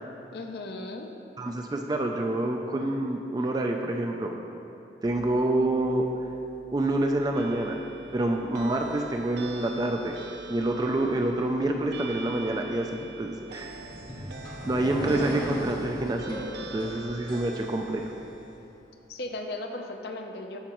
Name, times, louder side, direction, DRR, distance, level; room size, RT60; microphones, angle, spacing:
voice 1, 0.3-1.1 19.1-20.6, left 2 dB, 60° left, 4 dB, 0.6 m, -36 dB
voice 2, 1.4-4.3 5.0-6.0 6.7-7.8 8.1-10.2 10.5-13.7 14.6-16.4 16.7-18.1, right 1 dB, 20° right, 3 dB, 0.3 m, -27 dB
sound 1, 5.0-17.2, left 3 dB, 5° left, 0.8 m, -56 dB
sound 2, 7.3-18.6, right 3 dB, 70° right, 0.6 m, -44 dB
sound 3, 13.5-18.2, equal, 25° left, 1.0 m, -36 dB
13.0 x 4.8 x 3.0 m, 2.8 s
head